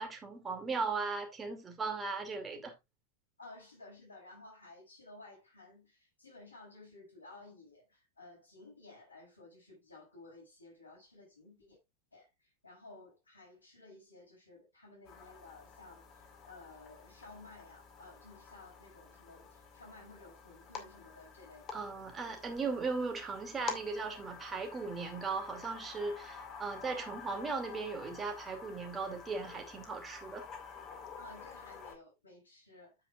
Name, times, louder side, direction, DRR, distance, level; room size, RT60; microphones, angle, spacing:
voice 1, 0.0-2.7 21.7-30.5, right 4 dB, 20° right, 2.5 m, -37 dB
voice 2, 3.4-11.8 12.1-21.8 22.2-22.4 31.2-33.0, left 2 dB, 80° left, 6.4 m, -55 dB
sound 1, 15.0-32.0, left 6 dB, 35° left, 2.2 m, -49 dB
9.6 x 7.6 x 2.4 m
figure-of-eight pair, 90°, 0 cm